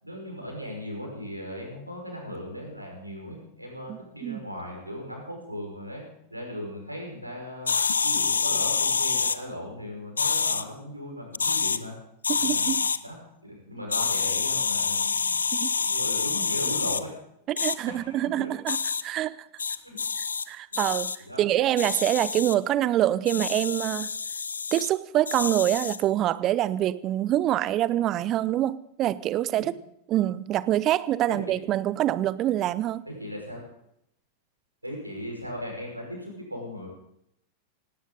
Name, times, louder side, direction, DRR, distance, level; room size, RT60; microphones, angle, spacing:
voice 1, 0.0-6.0 6.3-7.7 8.0-11.9 12.3-13.2 13.4-15.3 15.8-17.1 17.9-18.5 19.8-20.0 20.7-20.8 21.2-21.4 29.5-29.7 31.3-31.4 33.1-33.6 34.8-36.9, equal, 85° right, 0 dB, 5.5 m, -37 dB
voice 2, 3.9-4.4 12.3-12.8 15.5-15.7 17.5-18.8 19.0-19.4 20.5-21.1 21.4-24.1 24.7-29.7 30.1-33.1, right 13 dB, 35° right, 19 dB, 0.7 m, -25 dB
sound 1, 7.7-9.4 10.2-10.6 11.3-11.8 12.2-13.0 13.9-17.0 17.6-17.8 18.7-19.0 19.6-20.4 20.7-21.2 21.8-22.5 23.3-24.9 25.3-26.0, left 5 dB, 75° left, 0.6 m, -27 dB
18.0 x 18.0 x 4.0 m, 0.78 s
figure-of-eight pair, 90°, 0 cm